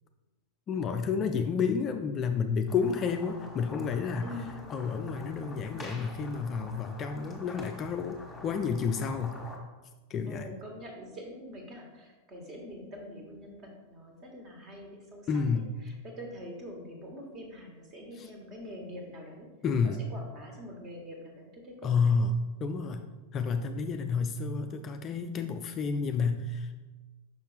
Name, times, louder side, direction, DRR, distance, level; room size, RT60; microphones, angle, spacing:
voice 1, 0.7-4.3 4.7-9.4 10.1-10.5 15.3-15.7 18.2-18.3 19.6-20.1 21.8-23.0 23.3-26.7, left 5 dB, 30° left, 6 dB, 0.4 m, -30 dB
sound 1, 2.7-9.6, left 1 dB, 10° left, 1.5 m, -46 dB
voice 2, 4.2-4.7 10.2-15.3 15.8-19.5 19.8-22.2, equal, 30° right, 1 dB, 1.6 m, -45 dB
6.0 x 5.7 x 3.4 m, 1.2 s
figure-of-eight pair, 90°, 0 cm